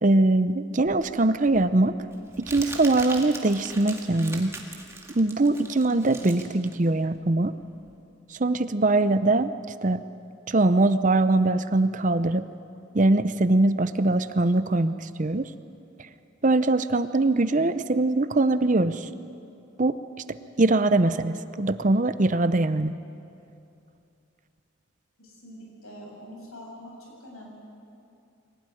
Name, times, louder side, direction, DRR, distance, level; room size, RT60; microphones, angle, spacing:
voice 1, 0.0-1.9 2.4-4.5 5.1-7.5 8.3-9.5 9.8-10.0 10.5-12.4 12.9-15.5 16.4-19.1 19.8-20.0 20.3-22.9, right 2 dB, 35° right, 12 dB, 0.6 m, -22 dB
Crumpling crinkling, 0.9-7.9, right 3 dB, 15° right, 2.0 m, -41 dB
voice 2, 25.2-26.9 27.2-27.5, equal, 85° left, -1 dB, 7.5 m, -44 dB
24.0 x 17.0 x 9.8 m, 2.7 s
head